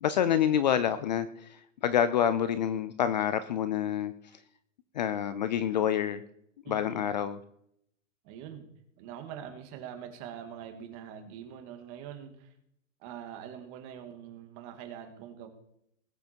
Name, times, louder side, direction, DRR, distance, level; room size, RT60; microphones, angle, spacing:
voice 1, 0.0-4.1 5.0-6.2 6.7-7.4, left 9 dB, 35° left, 14 dB, 0.5 m, -27 dB
voice 2, 6.6-7.1 8.2-8.7 9.0-12.5 13.0-15.5, right 9 dB, 30° right, 5 dB, 2.1 m, -44 dB
20.0 x 8.0 x 4.5 m, 0.74 s
hypercardioid pair, 165°, 39 cm